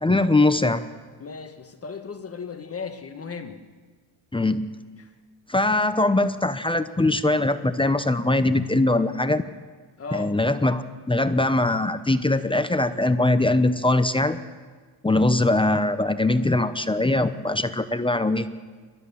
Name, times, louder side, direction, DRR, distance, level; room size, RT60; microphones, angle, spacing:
voice 1, 0.0-0.8 4.3-4.7 5.5-9.4 10.1-14.4 15.0-18.5, left 2 dB, 10° left, 11 dB, 0.8 m, -21 dB
voice 2, 1.2-3.6 5.0-5.1 10.0-10.3, left 5 dB, 30° left, 7 dB, 1.5 m, -36 dB
29.5 x 13.0 x 7.0 m, 1.5 s
cardioid pair, 115°, 50 cm